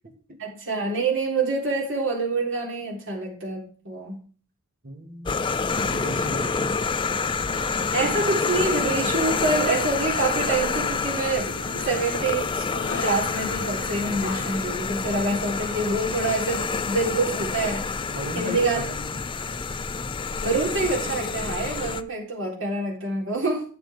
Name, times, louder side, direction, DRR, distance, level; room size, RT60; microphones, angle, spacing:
voice 1, 0.4-4.2 7.9-17.8 18.3-18.8 20.4-23.6, right 3 dB, 65° right, -1 dB, 3.9 m, -26 dB
voice 2, 4.8-5.4 5.8-6.7 18.1-19.2, equal, 45° right, 3 dB, 2.1 m, -35 dB
sound 1, 5.3-22.0, left 4 dB, 25° left, 0.5 m, -28 dB
sound 2, 8.6-14.7, left 4 dB, 60° left, 1.7 m, -39 dB
12.0 x 8.8 x 3.6 m, 0.40 s
head